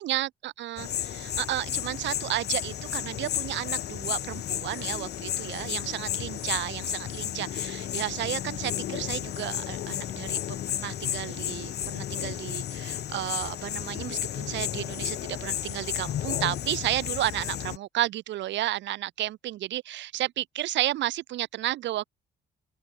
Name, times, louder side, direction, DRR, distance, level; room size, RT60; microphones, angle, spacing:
voice 1, 0.0-10.4 10.8-22.0, right 14 dB, 80° right, 4.0 m, -32 dB
sound 1, 0.8-17.8, left 11 dB, 65° left, 1.4 m, -33 dB
open air
supercardioid pair, 70°, 18 cm